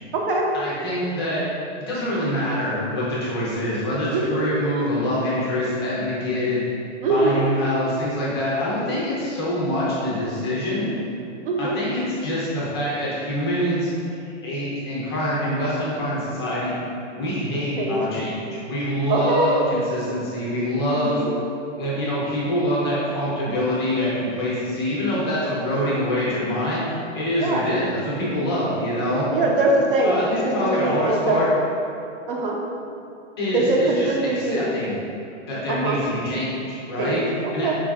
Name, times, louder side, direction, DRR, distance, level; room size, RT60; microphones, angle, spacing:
voice 1, 0.5-1.4 1.8-6.6 7.1-10.9 11.6-13.9 14.3-16.7 17.2-21.2 21.8-26.8 27.1-29.3 30.0-31.5 33.4-35.0 35.5-37.2 37.5-37.7, equal, 20° left, -8 dB, 0.5 m, -25 dB
voice 2, 4.1-4.4 7.0-7.4 11.5-11.8 17.8-18.0 19.1-19.6 21.0-21.3 27.4-27.7 29.3-30.4 30.8-31.4 32.3-32.6 33.5-34.6 35.7-36.0 37.0-37.7, right 2 dB, 45° right, -1 dB, 0.5 m, -22 dB
4.4 x 2.5 x 2.2 m, 2.6 s
hypercardioid pair, 165°, 37 cm